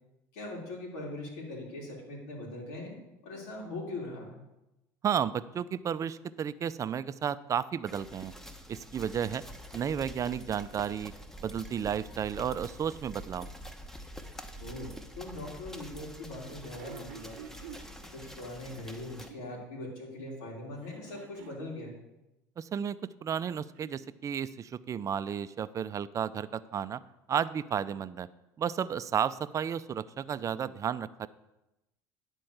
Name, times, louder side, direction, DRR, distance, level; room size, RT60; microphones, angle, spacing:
voice 1, 0.3-3.0 3.2-4.4 14.6-17.6 18.1-22.0, left 2 dB, 80° left, -1 dB, 3.2 m, -41 dB
voice 2, 5.0-8.3 8.7-9.4 9.7-11.1 11.4-13.5 22.6-27.0 27.3-28.3 28.6-31.3, right 8 dB, 35° right, 15 dB, 0.5 m, -32 dB
sound 1, 7.9-19.3, equal, 5° left, 1.0 m, -46 dB
sound 2, 14.2-15.0 16.5-17.9 19.0-19.7 20.7-21.7 23.1-24.1 25.2-25.3, right 8 dB, 80° right, 0.8 m, -50 dB
10.5 x 4.5 x 7.8 m, 0.93 s
supercardioid pair, 80°, 9 cm